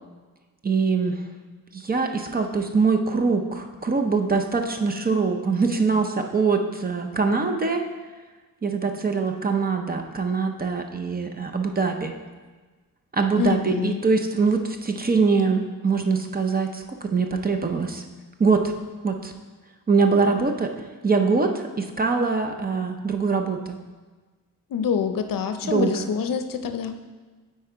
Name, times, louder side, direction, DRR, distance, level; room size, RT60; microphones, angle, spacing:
voice 1, 0.6-1.2 1.7-7.8 8.6-12.1 13.1-18.0 18.4-18.7 19.0-19.3 19.9-20.7 21.0-23.8 25.6-26.1, right 4 dB, 25° right, 4 dB, 0.5 m, -23 dB
voice 2, 13.4-14.0 24.7-27.0, left 6 dB, 70° left, 8 dB, 0.6 m, -26 dB
8.6 x 4.3 x 4.5 m, 1.3 s
wide cardioid pair, 150°, 35 cm